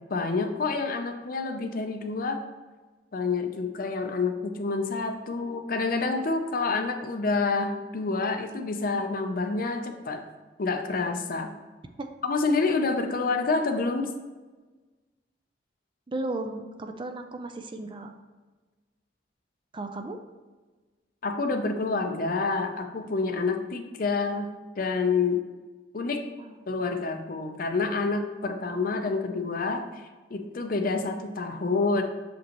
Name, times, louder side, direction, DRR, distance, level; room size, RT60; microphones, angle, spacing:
voice 1, 0.1-2.4 3.1-10.2 10.6-11.5 12.2-14.1 21.2-24.5 24.8-25.4 25.9-26.2 26.7-29.9 30.3-32.0, left 4 dB, 50° left, 6 dB, 0.6 m, -28 dB
voice 2, 16.1-18.1 19.7-20.2 26.4-26.6, right 2 dB, 30° right, 6 dB, 0.4 m, -35 dB
6.7 x 5.1 x 3.0 m, 1.3 s
head